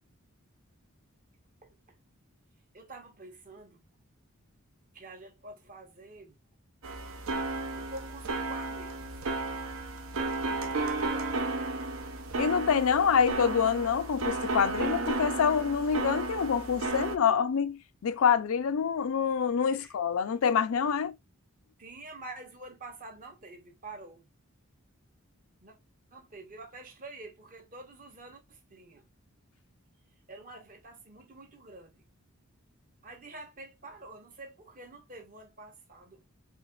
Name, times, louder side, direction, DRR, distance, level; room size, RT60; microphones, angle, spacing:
voice 1, 1.6-2.0 2.7-3.9 4.9-6.4 7.8-9.1 10.7-11.5 19.7-19.9 21.8-24.3 25.6-25.8 26.1-29.0 30.3-32.0 33.0-36.2, right 2 dB, 40° right, 1.0 m, -47 dB
sound 1, 6.8-17.2, right 3 dB, 65° right, 0.6 m, -33 dB
voice 2, 12.4-21.1, left 7 dB, 70° left, 0.4 m, -26 dB
4.4 x 2.9 x 2.3 m
head